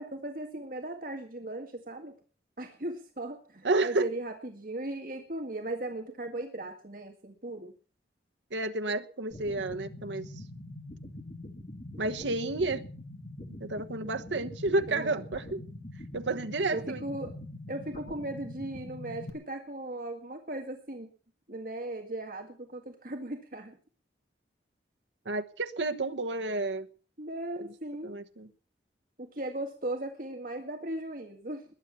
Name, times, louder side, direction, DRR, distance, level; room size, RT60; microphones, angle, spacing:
voice 1, 0.0-2.2 2.6-7.7 14.9-15.2 16.7-17.3 17.7-21.1 21.5-23.8 27.2-28.1 29.2-31.6, right 1 dB, 50° right, 4 dB, 1.9 m, -37 dB
voice 2, 3.6-4.1 8.5-10.3 12.0-12.8 13.6-15.6 16.1-17.0 25.2-26.9 28.0-28.5, right 2 dB, 85° right, 8 dB, 1.2 m, -30 dB
sound 1, 9.3-19.3, left 1 dB, 35° left, 2.3 m, -44 dB
21.0 x 8.2 x 7.1 m, 0.41 s
head